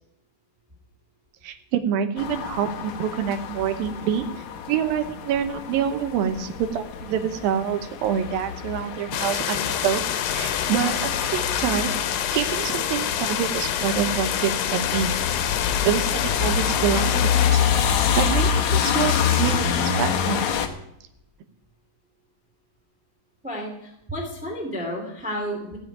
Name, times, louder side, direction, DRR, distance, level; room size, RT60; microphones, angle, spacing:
voice 1, 1.4-4.3 4.7-11.9 12.3-15.2 15.8-17.1 17.5-20.4, right 9 dB, 85° right, 8 dB, 2.8 m, -26 dB
sound 1, 2.2-20.7, left 7 dB, 65° left, 2.2 m, -27 dB
sound 2, 9.1-17.5, left 10 dB, 80° left, 2.8 m, -27 dB
voice 2, 23.4-25.8, equal, 5° right, -1 dB, 2.1 m, -31 dB
15.5 x 7.1 x 9.3 m, 0.78 s
omnidirectional pair, 4.0 m